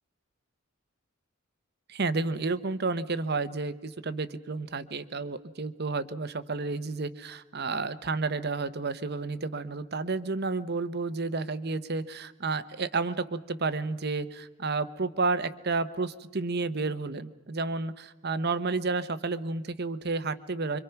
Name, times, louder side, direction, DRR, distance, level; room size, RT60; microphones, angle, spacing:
voice 1, 1.9-20.8, right 3 dB, 50° right, 13 dB, 0.9 m, -31 dB
26.0 x 24.5 x 5.8 m, 1.1 s
head